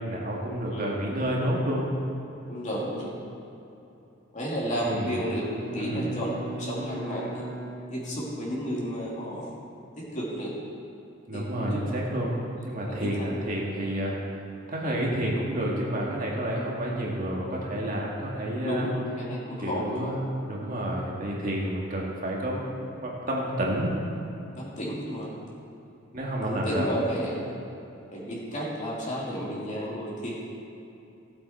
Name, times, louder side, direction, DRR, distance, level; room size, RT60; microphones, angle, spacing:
voice 1, 0.0-1.8 4.8-5.2 5.7-6.0 11.3-14.2 14.7-18.9 19.6-22.7 23.0-23.9 26.1-26.9, right 1 dB, 45° right, -3 dB, 1.9 m, -29 dB
voice 2, 2.5-3.2 4.3-7.4 7.9-9.4 10.0-10.5 11.3-11.8 12.8-13.2 18.6-20.2 24.6-25.3 26.4-27.4 28.1-30.3, equal, 40° left, -5 dB, 2.8 m, -32 dB
Bowed string instrument, 5.0-8.6, right 2 dB, 80° right, 3.1 m, -39 dB
16.5 x 8.0 x 4.4 m, 2.9 s
head